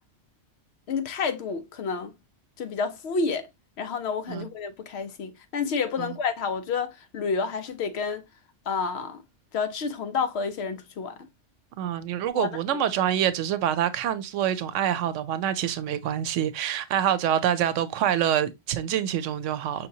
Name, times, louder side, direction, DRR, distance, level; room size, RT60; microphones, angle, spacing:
voice 1, 0.9-2.1 2.6-3.5 3.8-8.2 8.7-9.2 9.5-11.2 12.3-12.8, left 5 dB, 65° left, 0.8 m, -29 dB
voice 2, 11.8-19.9, right 10 dB, 85° right, 0.9 m, -26 dB
5.5 x 2.8 x 2.7 m
omnidirectional pair, 1.2 m